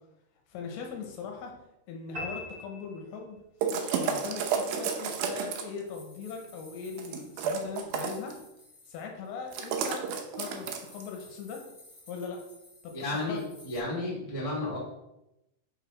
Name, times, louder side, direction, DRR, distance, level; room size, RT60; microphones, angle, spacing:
voice 1, 0.5-1.6 1.9-3.4 3.9-8.4 8.9-11.6 12.1-12.4 12.8-13.4, left 5 dB, 75° left, 1 dB, 3.0 m, -40 dB
sound 1, 2.1-3.7, left 2 dB, 35° right, 3.1 m, -41 dB
sound 2, 3.6-5.8 7.0-8.3 9.5-11.0, right 6 dB, 90° right, 2.0 m, -31 dB
sound 3, 4.9-13.8, left 2 dB, 5° left, 1.4 m, -56 dB
voice 2, 12.9-14.8, left 2 dB, 50° left, -6 dB, 0.4 m, -33 dB
6.3 x 4.1 x 5.8 m, 0.90 s
omnidirectional pair, 5.3 m